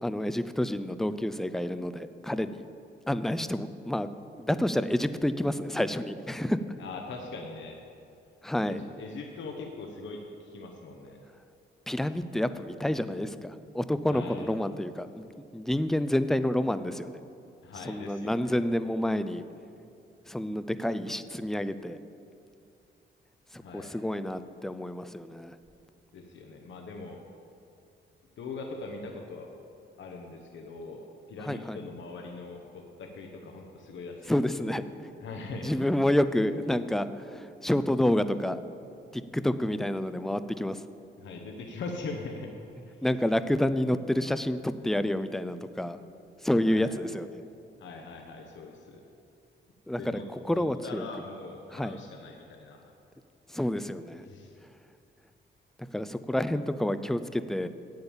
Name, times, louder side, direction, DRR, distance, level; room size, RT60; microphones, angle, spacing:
voice 1, 0.0-2.6 3.1-4.1 4.4-6.6 8.4-8.8 11.9-17.2 17.9-19.4 20.3-22.0 23.5-25.6 31.4-31.8 34.3-35.1 35.6-38.6 39.1-40.8 43.0-46.0 46.4-47.4 49.9-51.1 51.7-52.0 53.5-54.2 55.8-57.7, left 1 dB, ahead, 12 dB, 0.3 m, -29 dB
voice 2, 6.8-7.8 8.7-11.2 14.1-14.5 17.6-18.6 23.6-24.0 26.1-27.2 28.4-29.5 30.0-31.0 31.3-34.3 34.6-34.7 35.2-35.7 41.2-42.5 42.8-43.0 46.6-47.0 47.8-49.0 50.0-50.2 50.5-52.9 54.2-54.6, left 3 dB, 75° left, 2 dB, 1.0 m, -41 dB
8.8 x 7.8 x 7.1 m, 2.6 s
cardioid pair, 130°, 20 cm